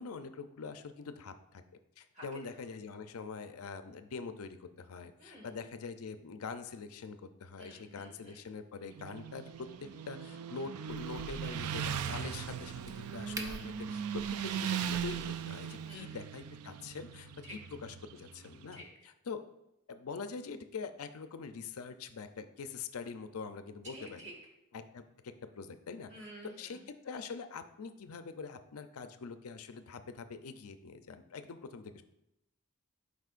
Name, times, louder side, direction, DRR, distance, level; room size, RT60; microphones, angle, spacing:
voice 1, 0.0-1.6 2.0-17.3 17.8-19.4 19.9-24.2 24.7-32.0, left 5 dB, 75° left, 9 dB, 0.5 m, -44 dB
voice 2, 5.2-5.5 7.6-8.4 12.0-12.3 13.5-13.7 15.8-16.1 17.4-17.6 18.7-18.8 23.8-24.3 26.1-26.8, equal, 35° right, -2 dB, 2.0 m, -51 dB
Motorcycle, 8.9-18.6, right 8 dB, 85° right, 0.4 m, -39 dB
Crack, 10.9-15.9, right 1 dB, 15° right, 0.7 m, -49 dB
11.5 x 5.0 x 2.5 m, 0.87 s
head